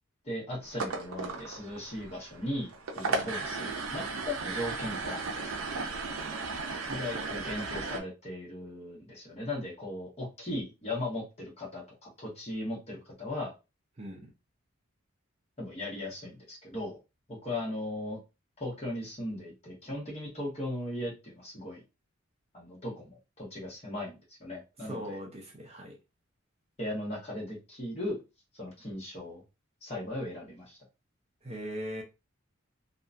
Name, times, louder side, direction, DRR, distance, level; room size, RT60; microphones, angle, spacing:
voice 1, 0.2-5.2 6.9-13.5 15.6-17.0 17.3-18.2 18.6-21.8 22.5-25.2 26.8-28.2 28.5-29.4 29.8-30.8, left 1 dB, 30° left, 1.1 m, -37 dB
sound 1, 0.6-8.0, right 3 dB, 75° right, 0.5 m, -35 dB
voice 2, 3.1-3.6 14.0-14.2 24.8-26.0 31.4-32.0, equal, 30° right, 0.6 m, -40 dB
2.8 x 2.2 x 2.5 m
head